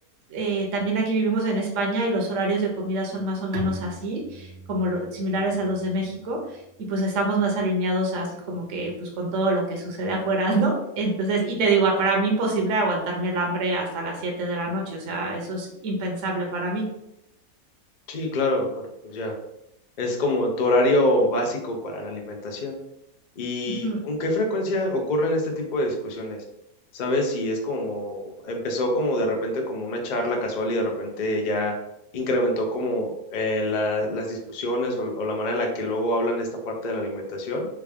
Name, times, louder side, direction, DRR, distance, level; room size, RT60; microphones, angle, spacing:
voice 1, 0.3-6.4 6.9-16.8 23.6-24.0, right 2 dB, 60° right, 0 dB, 0.9 m, -25 dB
Bowed string instrument, 3.5-7.1, right 3 dB, 80° right, 1.1 m, -41 dB
voice 2, 18.1-19.4 20.0-22.8 23.4-26.4 26.9-31.7 32.1-37.7, left 1 dB, 65° left, 2 dB, 0.4 m, -25 dB
3.5 x 2.3 x 3.4 m, 0.82 s
omnidirectional pair, 1.7 m